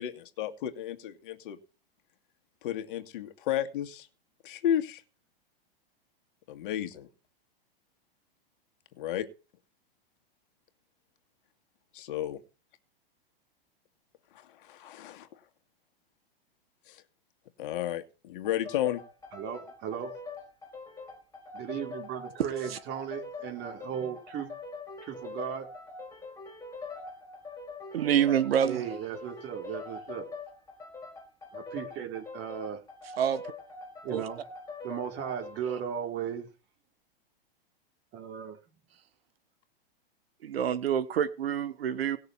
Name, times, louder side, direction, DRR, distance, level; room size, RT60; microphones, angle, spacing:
voice 1, 0.0-1.6 2.6-4.1 4.4-5.0 6.5-7.1 9.0-9.3 11.9-12.4 14.3-15.4 16.9-17.0 17.6-19.0, left 11 dB, 60° left, 2.1 m, -33 dB
sound 1, 18.4-35.9, left 3 dB, 10° left, 4.5 m, -44 dB
voice 2, 19.3-20.1 21.5-24.5 25.0-25.7 28.6-30.3 31.5-32.8 34.0-34.4 34.8-36.5 38.1-38.8, right 8 dB, 35° right, 4.4 m, -36 dB
voice 3, 27.9-28.8 33.2-33.4 34.1-34.2 40.4-42.2, right 9 dB, 80° right, 1.5 m, -27 dB
18.5 x 6.7 x 5.9 m
hypercardioid pair, 125°, 30 cm